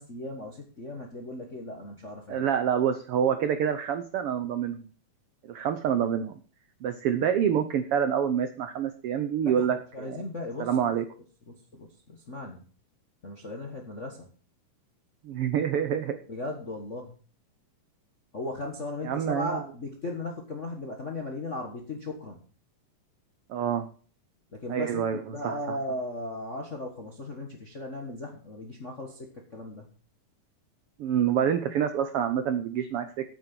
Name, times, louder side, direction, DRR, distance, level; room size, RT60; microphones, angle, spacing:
voice 1, 0.0-2.4 9.4-10.9 11.5-12.7 13.2-14.3 16.3-17.1 18.3-22.4 24.5-29.9, left 2 dB, 45° left, 2 dB, 0.9 m, -37 dB
voice 2, 2.3-4.9 5.4-6.3 6.8-10.2 10.6-11.0 15.2-16.2 19.0-19.6 23.5-23.9 24.7-25.8 31.0-33.3, right 8 dB, 85° right, 9 dB, 1.2 m, -27 dB
9.1 x 8.5 x 6.1 m, 0.40 s
omnidirectional pair, 3.8 m